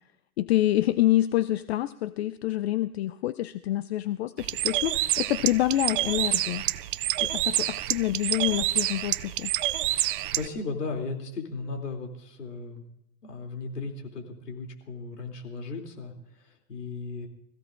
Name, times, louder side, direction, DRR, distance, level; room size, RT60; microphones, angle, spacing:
voice 1, 0.4-6.6 7.2-9.5, left 14 dB, 45° left, 14 dB, 0.5 m, -27 dB
Bird, 4.4-10.5, right 15 dB, 35° right, 0.5 m, -28 dB
voice 2, 9.8-12.8 13.2-17.3, left 3 dB, 85° left, 2 dB, 3.0 m, -36 dB
25.5 x 15.5 x 2.5 m, 0.80 s
hypercardioid pair, 120°, 46 cm